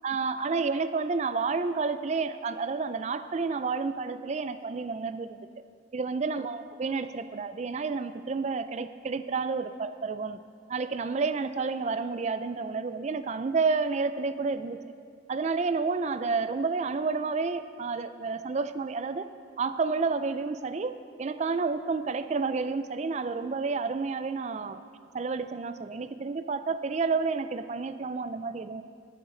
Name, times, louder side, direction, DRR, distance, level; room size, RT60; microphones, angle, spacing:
voice 1, 0.0-5.4 5.9-10.4 10.7-14.8 15.3-19.3 19.6-24.8 25.1-28.8, right 4 dB, 35° right, 12 dB, 0.3 m, -30 dB
20.0 x 6.8 x 3.8 m, 2.2 s
head